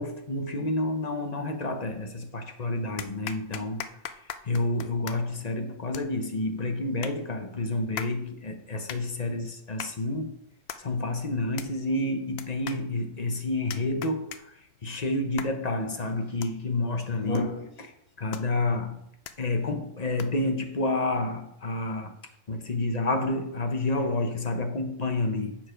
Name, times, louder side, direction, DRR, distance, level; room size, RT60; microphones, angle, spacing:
voice 1, 0.0-10.4 10.8-17.9 18.2-19.0 19.4-22.1 22.5-25.6, left 2 dB, 35° left, 0.9 m, -29 dB
sound 1, 2.3-2.4 3.0-20.5, left 8 dB, 65° left, 0.8 m, -44 dB
7.5 x 6.6 x 5.1 m
omnidirectional pair, 1.3 m